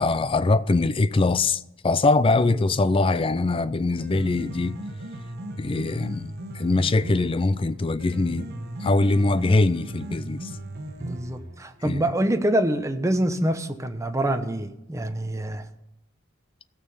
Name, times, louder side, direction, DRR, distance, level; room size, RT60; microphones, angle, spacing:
voice 1, 0.0-4.8 5.6-8.5 8.8-10.5 11.8-12.1, left 3 dB, 25° left, 0.4 m, -22 dB
Piano, 3.8-11.8, right 1 dB, 55° right, 1.2 m, -37 dB
voice 2, 11.0-15.6, right 1 dB, 15° right, 0.8 m, -26 dB
16.0 x 6.7 x 5.5 m
head